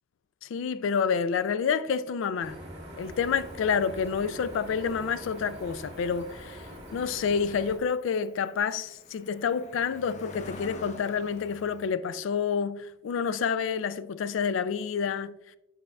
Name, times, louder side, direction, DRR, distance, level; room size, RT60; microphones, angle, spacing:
voice 1, 0.4-2.6 3.0-15.3, left 6 dB, 85° left, 0.3 m, -29 dB
sound 1, 2.4-7.8, equal, 35° right, 1.7 m, -44 dB
Cricket, 3.0-11.9, left 1 dB, 35° left, 0.5 m, -48 dB
7.5 x 5.5 x 2.3 m
head